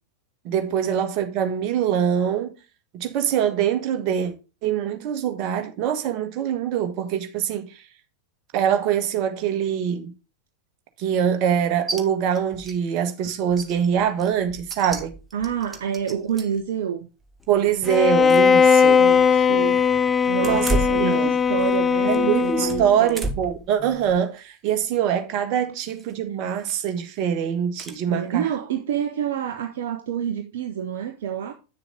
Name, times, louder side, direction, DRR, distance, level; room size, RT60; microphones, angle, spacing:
voice 1, 0.4-2.5 3.0-4.3 4.6-7.7 8.5-10.1 11.0-15.1 17.5-19.0 19.3-19.4 20.4-21.3 22.0-28.4, right 9 dB, 40° right, 1.6 m, -24 dB
sound 1, 11.9-12.0 12.3-12.8 13.1-13.2 13.5-16.6 17.2-18.5 18.8-18.9 20.3-21.8 22.1-23.6 24.1-24.4 25.8-26.1 26.6-27.0 27.8-28.0, right 2 dB, 15° right, 1.5 m, -33 dB
voice 2, 15.3-17.1 19.0-19.9 20.3-23.2 28.1-31.5, right 9 dB, 60° right, 0.9 m, -28 dB
Bowed string instrument, 17.9-23.0, left 6 dB, 20° left, 0.5 m, -18 dB
9.1 x 6.8 x 3.9 m
figure-of-eight pair, 90°, 0 cm